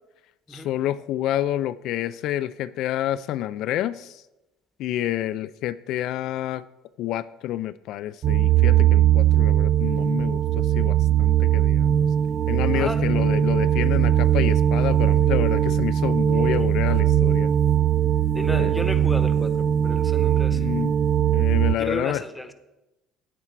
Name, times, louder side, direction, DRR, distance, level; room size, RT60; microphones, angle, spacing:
voice 1, 0.5-4.2 4.8-6.6 7.0-12.1 12.5-17.5 18.5-18.8 20.5-20.9 21.3-22.2, left 13 dB, 65° left, 13 dB, 0.3 m, -28 dB
sound 1, 8.2-21.7, right 10 dB, 50° right, 0.4 m, -20 dB
voice 2, 12.7-13.2 16.5-16.7 18.3-20.7 21.8-22.5, left 1 dB, 5° left, 9 dB, 1.0 m, -33 dB
9.0 x 8.9 x 4.6 m, 0.99 s
supercardioid pair, 90°, 0 cm